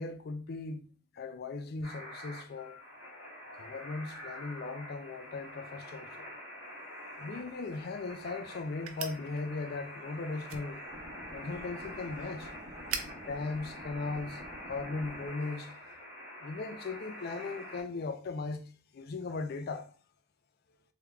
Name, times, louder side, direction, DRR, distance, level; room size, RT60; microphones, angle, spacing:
voice 1, 0.0-2.8 3.5-6.3 7.2-10.8 11.3-12.5 13.1-14.4 14.7-15.7 16.4-20.0, left 3 dB, 50° left, 0.4 m, -38 dB
sound 1, 1.8-17.8, equal, 85° left, 1.6 m, -46 dB
sound 2, 7.5-14.6, right 7 dB, 90° right, 0.4 m, -46 dB
sound 3, 10.9-15.3, equal, 40° right, 0.9 m, -49 dB
3.5 x 3.2 x 2.3 m
head